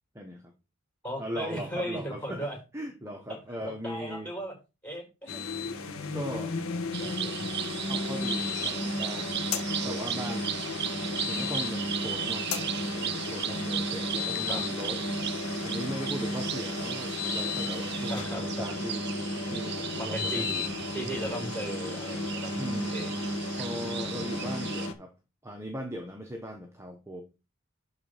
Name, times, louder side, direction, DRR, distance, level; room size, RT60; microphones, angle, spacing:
voice 1, 0.1-0.5 1.2-4.3 6.1-6.6 7.9-9.5 9.8-10.9 11.3-15.0 15.6-19.1 19.5-20.7 21.2-21.5 22.6-23.1 23.5-25.1 25.4-27.2, equal, 15° right, 4 dB, 1.1 m, -39 dB
voice 2, 1.0-2.6 3.3-4.5 4.8-5.4 5.7-5.9 7.0-7.5 14.5-14.6 18.1-18.7 20.0-23.1, right 1 dB, 5° left, -1 dB, 6.1 m, -37 dB
sound 1, 5.3-24.9, left 2 dB, 85° left, 1.7 m, -33 dB
sound 2, 6.9-24.9, right 12 dB, 50° right, 0.5 m, -37 dB
11.5 x 4.1 x 5.0 m, 0.28 s
head